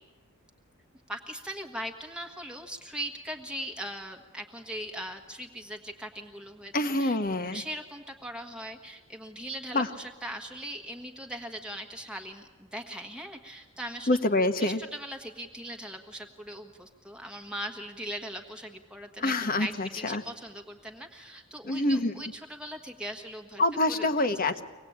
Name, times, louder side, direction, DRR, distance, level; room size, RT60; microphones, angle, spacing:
voice 1, 1.1-6.7 7.0-7.2 7.5-14.1 14.6-24.3, equal, 5° right, 4 dB, 1.5 m, -40 dB
voice 2, 6.7-7.6 9.7-9.9 14.1-14.8 19.2-20.2 21.6-22.1 23.6-24.6, left 2 dB, 40° left, 10 dB, 1.3 m, -26 dB
25.0 x 19.0 x 8.8 m, 1.3 s
head